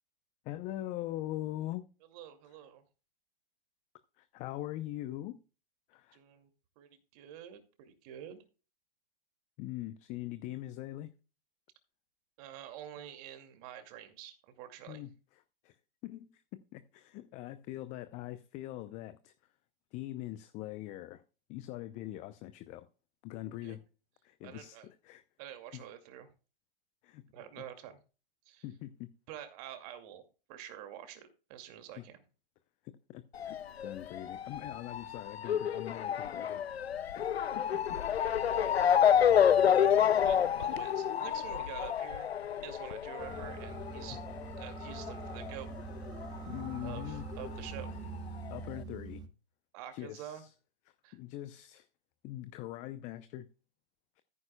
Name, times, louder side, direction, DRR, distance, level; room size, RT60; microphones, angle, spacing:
voice 1, 0.4-1.8 4.2-5.4 5.9-6.2 9.6-11.1 14.9-15.8 16.0-19.3 19.9-21.2 21.5-22.9 23.2-23.8 24.2-25.2 25.7-25.8 27.0-27.2 27.6-27.7 28.6-29.1 31.9-32.0 32.8-36.6 37.0-38.0 44.1-44.2 46.5-48.0 48.5-49.2 49.9-50.5 51.1-51.9 52.2-53.5, left 15 dB, 25° left, 0.6 m, -42 dB
voice 2, 2.1-2.8 6.1-6.5 6.8-8.4 12.4-15.0 23.6-23.8 24.4-24.9 25.4-26.3 27.3-28.0 28.5-28.6 29.3-30.2 30.5-32.2 38.5-39.1 39.4-39.6 40.1-42.3 42.6-44.2 44.6-45.7 46.8-47.9 49.7-50.4 51.0-51.2, right 11 dB, 40° right, 2.4 m, -47 dB
Motor vehicle (road) / Siren, 33.4-46.4 46.6-47.8 48.5-48.6 48.8-48.9, left 9 dB, 90° left, 0.6 m, -29 dB
sound 1, 43.2-49.3, right 4 dB, 15° right, 1.1 m, -44 dB
14.5 x 9.5 x 2.3 m
hypercardioid pair, 125°, 30 cm